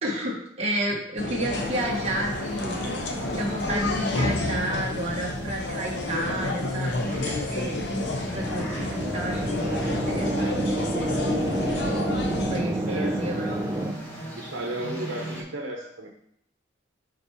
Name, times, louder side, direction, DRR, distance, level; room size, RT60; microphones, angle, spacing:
voice 1, 0.0-2.8 3.3-7.8 8.1-10.8 12.5-13.6, right 1 dB, 35° right, -2 dB, 1.4 m, -31 dB
sound 1, 1.2-12.6, left 2 dB, 60° left, 0.9 m, -30 dB
sound 2, 1.5-15.4, right 1 dB, 10° left, 1.5 m, -39 dB
sound 3, 8.3-13.9, right 1 dB, 15° right, 0.4 m, -28 dB
voice 2, 11.3-11.7 12.9-13.3 14.4-16.1, right 1 dB, 75° right, 1 dB, 0.9 m, -34 dB
5.5 x 4.4 x 4.6 m, 0.71 s
head